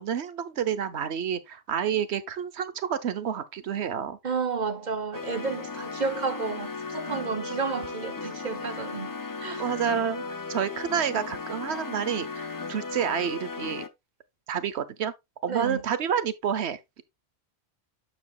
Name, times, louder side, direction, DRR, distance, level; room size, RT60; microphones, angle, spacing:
voice 1, 0.0-4.2 7.1-7.2 9.6-10.2 10.5-13.8 14.5-15.1 15.4-17.0, right 8 dB, 80° right, 1.2 m, -29 dB
voice 2, 4.2-9.1 9.4-9.7 15.5-15.8, right 5 dB, 45° right, 1.0 m, -31 dB
sound 1, 5.1-13.9, left 4 dB, 25° left, 0.5 m, -36 dB
9.1 x 7.1 x 2.4 m
omnidirectional pair, 1.1 m